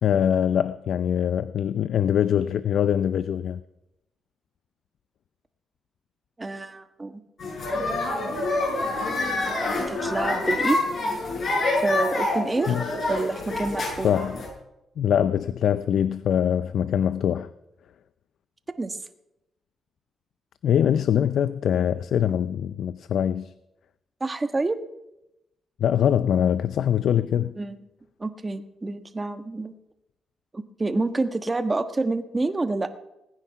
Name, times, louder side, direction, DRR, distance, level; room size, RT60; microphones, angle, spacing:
voice 1, 0.0-3.6 12.7-12.9 14.0-14.4 15.0-17.5 20.6-23.5 25.8-27.6, left 9 dB, 75° left, 0.5 m, -23 dB
voice 2, 6.4-7.2 9.9-10.8 11.8-12.7 13.1-14.1 18.8-19.0 24.2-24.8 27.6-27.8 28.2-29.7 30.5-32.9, right 3 dB, 25° right, 1.3 m, -27 dB
sound 1, 7.4-14.5, left 2 dB, 60° left, 7.3 m, -27 dB
19.5 x 9.7 x 5.8 m
cardioid pair, 85°, 0 cm